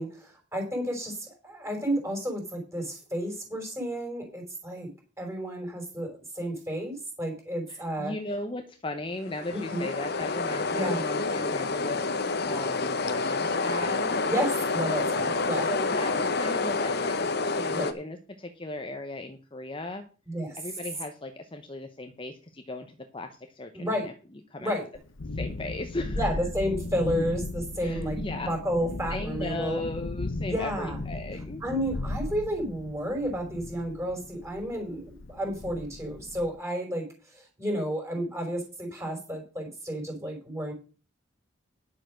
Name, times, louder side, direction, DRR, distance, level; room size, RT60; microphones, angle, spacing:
voice 1, 0.0-4.9 5.2-8.1 9.5-9.9 10.7-11.0 14.3-15.7 17.7-17.9 20.3-20.6 23.7-24.1 24.6-24.9 26.1-29.8 30.5-31.0 31.6-37.0 37.3-40.7, equal, 15° right, 2 dB, 4.9 m, -31 dB
voice 2, 7.7-14.2 15.6-20.0 20.6-24.1 24.5-24.7 25.3-26.3 27.1-27.3 27.8-28.5 29.1-31.6, left 2 dB, 25° left, 6 dB, 0.9 m, -37 dB
sound 1, 9.2-17.9, left 3 dB, 55° left, 1.2 m, -28 dB
Thunderstorm, 24.9-36.5, left 2 dB, 80° left, 0.9 m, -36 dB
11.0 x 6.6 x 6.3 m, 0.36 s
head